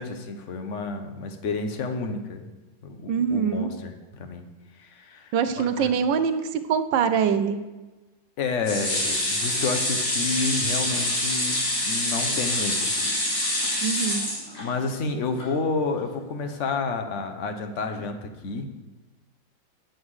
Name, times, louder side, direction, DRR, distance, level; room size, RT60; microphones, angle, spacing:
voice 1, 0.0-2.5 2.8-4.4 4.8-5.9 8.4-12.9 14.6-18.7, left 4 dB, 50° left, 6 dB, 1.0 m, -30 dB
voice 2, 3.1-3.7 5.3-7.6 13.8-14.3, right 7 dB, 75° right, 10 dB, 1.3 m, -24 dB
sound 1, 8.6-15.0 15.4-15.5 15.8-15.9, left 1 dB, 70° left, 3.4 m, -26 dB
9.2 x 7.9 x 4.8 m, 1.1 s
omnidirectional pair, 2.1 m